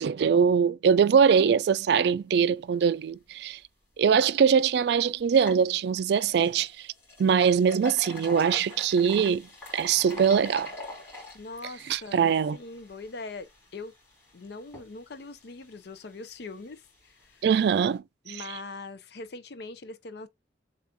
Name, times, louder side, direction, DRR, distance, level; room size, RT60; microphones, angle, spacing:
voice 1, 0.0-3.6 4.0-6.9 7.2-10.7 11.9-12.6 17.4-18.4, right 7 dB, 60° right, 0.3 m, -23 dB
sound 1, 3.9-4.0 4.5-4.6 5.2-18.0, left 2 dB, 15° left, 2.7 m, -45 dB
voice 2, 11.3-13.9 14.3-17.4 18.3-20.3, left 3 dB, 60° left, 0.5 m, -42 dB
7.0 x 2.4 x 2.7 m
head